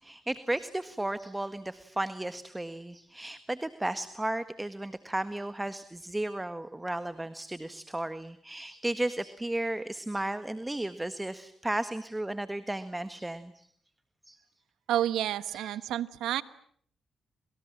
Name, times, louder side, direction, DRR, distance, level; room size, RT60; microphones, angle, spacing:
voice 1, 0.0-13.7 14.3-14.4 15.6-15.8, right 1 dB, 15° right, 12 dB, 1.6 m, -34 dB
voice 2, 14.9-16.4, right 12 dB, 85° right, 16 dB, 1.1 m, -29 dB
29.0 x 27.0 x 7.5 m, 0.63 s
supercardioid pair, 55°, 0 cm